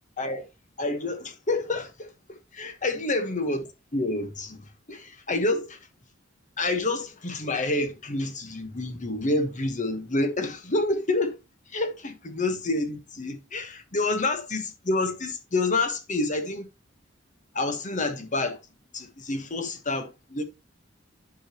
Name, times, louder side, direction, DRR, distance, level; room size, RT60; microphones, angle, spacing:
voice 1, 0.8-5.8 6.6-11.4 11.7-16.6 17.5-18.6 18.9-20.4, left 2 dB, 40° left, 1.3 m, -28 dB
9.9 x 5.1 x 3.0 m
head